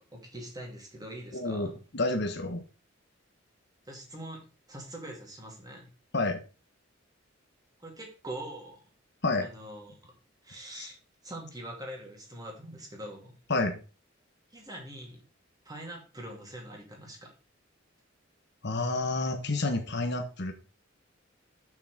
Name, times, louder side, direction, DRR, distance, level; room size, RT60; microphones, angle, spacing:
voice 1, 0.0-1.7 3.9-4.4 4.7-5.9 7.8-8.8 9.4-10.1 10.4-11.0 11.2-13.3 14.5-15.2 15.6-17.3, right 1 dB, 20° right, 0 dB, 2.6 m, -43 dB
voice 2, 1.3-2.6 6.1-6.4 9.2-9.5 10.8-10.9 13.5-13.8 18.6-20.5, left 2 dB, 60° left, 6 dB, 1.3 m, -29 dB
7.1 x 6.1 x 5.1 m, 0.34 s
head